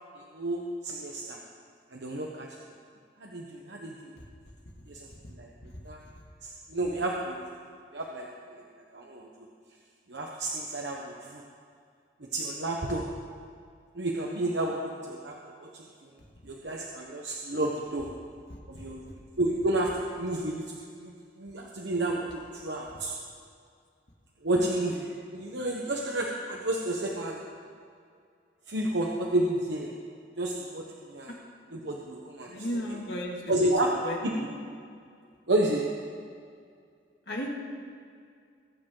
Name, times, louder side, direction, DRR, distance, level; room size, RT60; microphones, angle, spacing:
voice 1, 0.3-1.4 1.9-2.5 3.2-4.1 4.9-5.5 5.8-6.0 6.4-7.6 7.9-8.6 8.9-9.3 10.1-11.4 12.2-13.0 13.9-15.3 15.6-15.8 16.4-18.1 18.7-23.1 24.4-27.4 28.7-29.9 30.4-31.3 31.7-33.0 33.5-33.9 34.2-34.3 35.5-35.8, right 1 dB, 90° right, -1 dB, 1.2 m, -31 dB
voice 2, 32.5-33.7 34.0-34.5 37.3-37.5, equal, 70° left, -1 dB, 2.5 m, -35 dB
22.5 x 9.0 x 4.0 m, 2.2 s
head